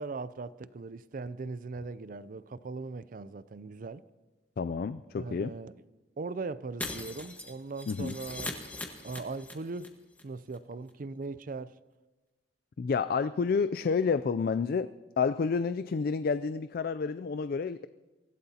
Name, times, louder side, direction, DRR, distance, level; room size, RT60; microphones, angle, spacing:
voice 1, 0.0-4.0 5.2-5.7 6.2-8.6 9.0-9.9 10.2-11.8, right 3 dB, 50° right, 0.5 m, -39 dB
voice 2, 4.6-5.5 7.9-8.1 12.8-14.9 15.2-17.9, left 5 dB, 55° left, 0.3 m, -29 dB
Shatter, 6.8-9.9 10.1-10.2 10.5-10.6, left 2 dB, 10° left, 1.4 m, -40 dB
24.0 x 15.5 x 2.8 m
head